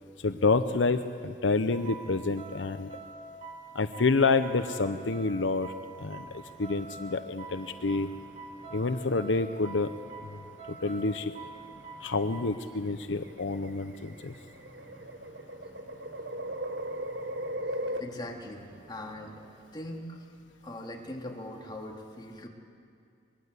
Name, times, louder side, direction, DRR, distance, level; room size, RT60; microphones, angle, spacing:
voice 1, 0.2-2.9 3.7-5.7 6.0-6.3 6.6-8.1 8.7-9.9 10.3-10.4 10.7-11.3 12.0-14.3, left 3 dB, 85° left, 10 dB, 0.8 m, -28 dB
sound 1, 1.7-12.5, right 3 dB, 40° right, 2.9 m, -46 dB
sound 2, 6.0-19.6, equal, 10° right, 7.6 m, -55 dB
sound 3, 9.4-10.2 11.4-11.8 12.7-18.0, right 1 dB, 65° right, 1.3 m, -37 dB
voice 2, 18.0-19.4 19.7-20.3 20.6-22.5, left 1 dB, 25° left, 0 dB, 2.7 m, -41 dB
23.0 x 21.5 x 8.3 m, 2.4 s
head